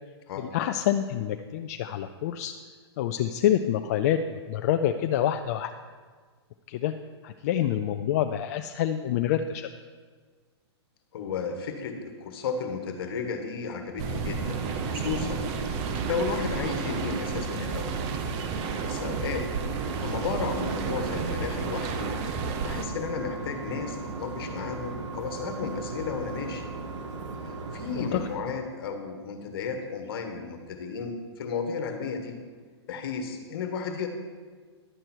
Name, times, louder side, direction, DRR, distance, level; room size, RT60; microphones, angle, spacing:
voice 1, 0.4-2.5 3.0-5.7 6.7-6.9 7.2-9.7 27.9-28.2, left 11 dB, 35° left, 7 dB, 0.4 m, -27 dB
voice 2, 11.1-15.4 15.8-18.0 18.8-19.5 19.8-22.2 22.6-26.7 27.4-32.4 32.9-34.1, left 5 dB, 55° left, 6 dB, 1.5 m, -33 dB
sound 1, 14.0-22.9, right 5 dB, 30° right, 0.7 m, -31 dB
sound 2, 14.2-27.8, right 3 dB, 10° right, 2.3 m, -46 dB
sound 3, 19.6-28.4, right 4 dB, 90° right, 1.3 m, -38 dB
11.0 x 7.8 x 4.5 m, 1.5 s
hypercardioid pair, 150°, 15 cm